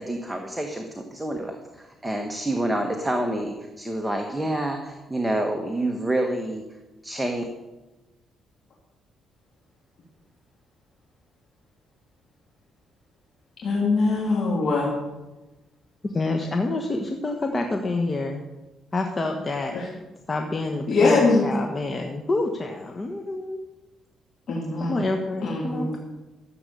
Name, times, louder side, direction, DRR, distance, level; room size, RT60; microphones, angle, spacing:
voice 1, 0.0-6.6 7.0-7.4, right 1 dB, 5° right, 3 dB, 1.4 m, -28 dB
voice 2, 13.6-14.9 19.7-19.8 20.9-21.4 24.5-25.0 25.4-25.9, left 3 dB, 60° left, -4 dB, 3.1 m, -22 dB
voice 3, 16.0-18.4 18.9-19.8 20.3-23.6 24.9-26.0, left 2 dB, 30° left, 3 dB, 1.3 m, -28 dB
14.0 x 8.0 x 6.8 m, 1.1 s
cardioid pair, 90°, 0 cm